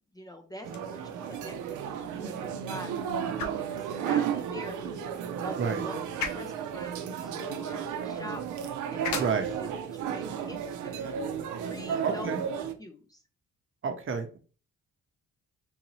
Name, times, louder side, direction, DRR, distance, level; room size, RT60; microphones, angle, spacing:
voice 1, 0.1-8.6 8.9-11.2 11.6-12.4 12.8-13.2, left 1 dB, 15° left, 5 dB, 0.5 m, -44 dB
sound 1, 0.6-12.6, left 6 dB, 70° left, 0.7 m, -44 dB
sound 2, 0.6-12.7, right 8 dB, 80° right, 0.6 m, -33 dB
voice 2, 9.2-9.5 12.0-12.4 13.8-14.4, right 6 dB, 45° right, 6 dB, 0.8 m, -30 dB
3.9 x 2.6 x 3.0 m, 0.37 s
cardioid pair, 90°, 30 cm